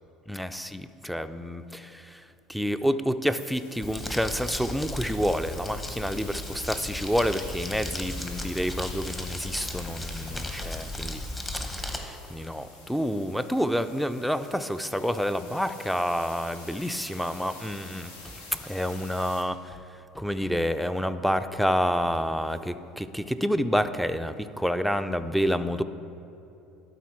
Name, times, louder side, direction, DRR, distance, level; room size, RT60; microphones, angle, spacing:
voice 1, 0.3-2.2 2.5-11.2 11.8-18.1 18.5-19.8 20.2-25.8, equal, ahead, 11 dB, 0.4 m, -28 dB
sound 1, 3.3-19.4, left 3 dB, 85° left, 1.1 m, -47 dB
Crumpling crinkling, 3.8-12.0, left 1 dB, 20° left, 1.1 m, -35 dB
12.0 x 4.3 x 4.4 m, 2.8 s
hypercardioid pair, 75°, 0 cm